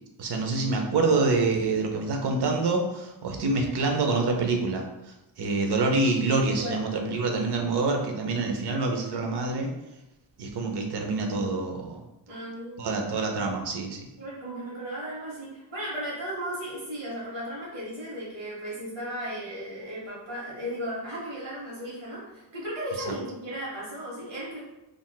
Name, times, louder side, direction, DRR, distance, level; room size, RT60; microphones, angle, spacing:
voice 1, 0.2-9.7 10.4-12.0 12.8-14.1, right 3 dB, 65° right, 2 dB, 0.6 m, -26 dB
voice 2, 12.3-12.9 14.2-24.6, equal, 85° right, -7 dB, 1.1 m, -35 dB
3.7 x 2.4 x 2.2 m, 0.97 s
wide cardioid pair, 170°, 45 cm